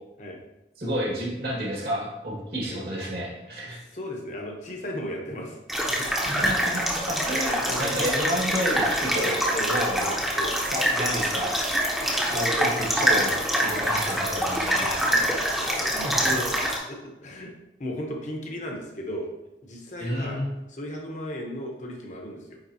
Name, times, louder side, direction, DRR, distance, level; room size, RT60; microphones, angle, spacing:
voice 1, 0.8-3.8 6.2-9.4 9.7-10.1 10.7-11.5 12.3-15.2 16.0-16.4 20.0-20.4, equal, 60° right, -4 dB, 1.8 m, -30 dB
voice 2, 3.9-6.5 7.3-8.1 9.2-10.6 14.7-16.6 16.9-17.5 17.8-19.3 19.6-20.4 20.7-22.6, equal, 45° left, 1 dB, 1.0 m, -36 dB
sound 1, 5.7-16.8, equal, ahead, 0.8 m, -25 dB
9.1 x 3.7 x 2.8 m, 0.96 s
head